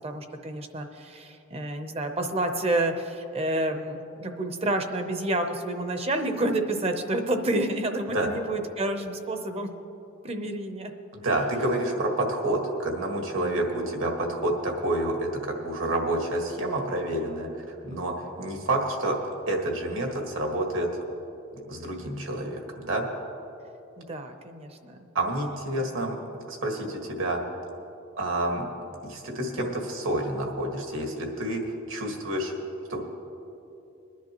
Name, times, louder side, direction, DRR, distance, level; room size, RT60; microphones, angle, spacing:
voice 1, 0.0-9.7 10.2-10.9 11.3-11.4 13.3-13.7 24.0-25.0 25.8-25.9, right 1 dB, 30° right, 6 dB, 0.7 m, -29 dB
voice 2, 11.1-19.2 19.5-20.9 21.6-23.1 25.2-26.2 26.5-27.4 28.2-28.7 29.0-31.6 31.9-32.5 32.9-33.0, right 1 dB, 70° right, 2 dB, 1.7 m, -28 dB
21.5 x 10.5 x 3.0 m, 2.9 s
head